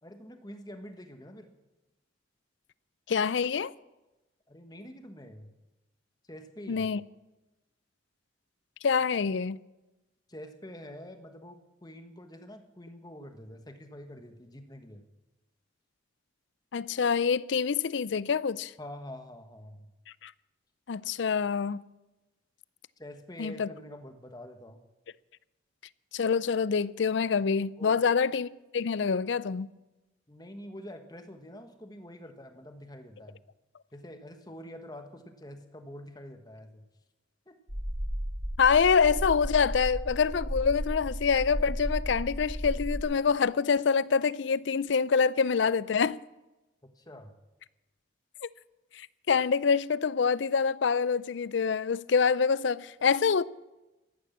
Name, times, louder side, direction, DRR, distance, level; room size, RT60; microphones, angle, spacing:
voice 1, 0.0-1.5 4.5-5.5 6.2-6.9 10.3-15.1 18.8-19.9 23.0-24.8 27.8-28.0 30.3-33.4 33.9-36.9 37.5-37.6 46.8-47.3, equal, 20° left, 1.3 m, -46 dB
voice 2, 3.1-3.7 6.7-7.0 8.8-9.6 16.7-18.7 20.2-20.3 20.9-21.8 23.4-23.7 26.1-29.7 38.6-46.2 49.0-53.4, left 5 dB, 70° left, 0.4 m, -26 dB
sound 1, 37.7-43.0, equal, 40° right, 4.5 m, -34 dB
14.5 x 11.0 x 7.3 m
head